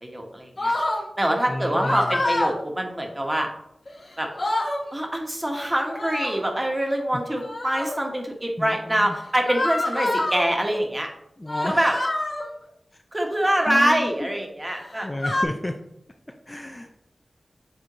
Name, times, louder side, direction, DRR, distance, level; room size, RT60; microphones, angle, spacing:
voice 1, 0.0-0.7 1.2-3.5 4.2-4.3 4.9-11.1 11.6-11.9 13.1-15.1, right 1 dB, 20° right, 2 dB, 1.4 m, -24 dB
sound 1, 0.6-1.0 1.7-2.5 3.9-4.0 4.2-4.8 5.9-6.4 7.3-8.0 9.5-10.4 11.5-12.5 13.4-13.8 14.7-15.4, left 1 dB, 60° left, 1.5 m, -26 dB
voice 2, 1.5-2.2 8.6-9.2 11.4-12.0 13.7-14.3 15.0-15.7 16.5-16.9, left 1 dB, 25° left, 4 dB, 0.6 m, -31 dB
7.6 x 4.2 x 3.1 m, 0.76 s
wide cardioid pair, 55°, 0 cm